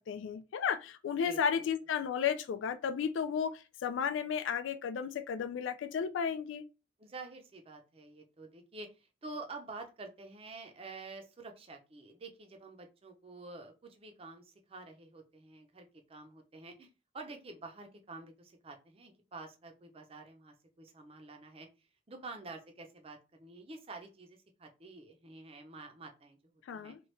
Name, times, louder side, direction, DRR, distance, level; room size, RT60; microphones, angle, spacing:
voice 1, 0.1-6.6 26.7-27.0, left 7 dB, 85° left, 0.3 m, -33 dB
voice 2, 1.2-1.7 7.0-26.9, right 3 dB, 30° right, 0.5 m, -49 dB
3.0 x 2.3 x 3.1 m
head